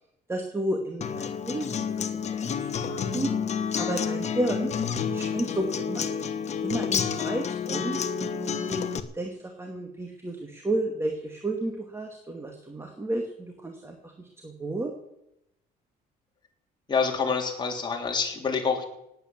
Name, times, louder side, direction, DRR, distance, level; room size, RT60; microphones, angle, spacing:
voice 1, 0.3-3.3 3.7-4.7 5.1-6.2 6.6-14.9, right 1 dB, 15° right, 3 dB, 2.1 m, -32 dB
Acoustic guitar, 1.0-9.0, left 7 dB, 40° left, 1.3 m, -29 dB
voice 2, 16.9-18.9, left 5 dB, 25° left, 1 dB, 3.6 m, -27 dB
18.5 x 9.2 x 7.3 m, 0.83 s
cardioid pair, 110°, 17 cm